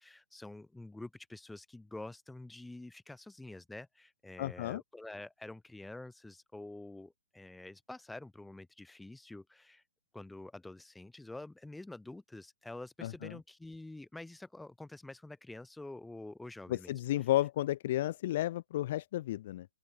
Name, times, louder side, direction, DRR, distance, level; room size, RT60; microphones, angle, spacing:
voice 1, 0.0-9.8 10.1-17.3, left 2 dB, 5° left, 3.6 m, -48 dB
voice 2, 4.4-4.8 13.0-13.3 16.7-19.7, left 14 dB, 40° left, 0.4 m, -32 dB
open air
hypercardioid pair, 160°, 0 cm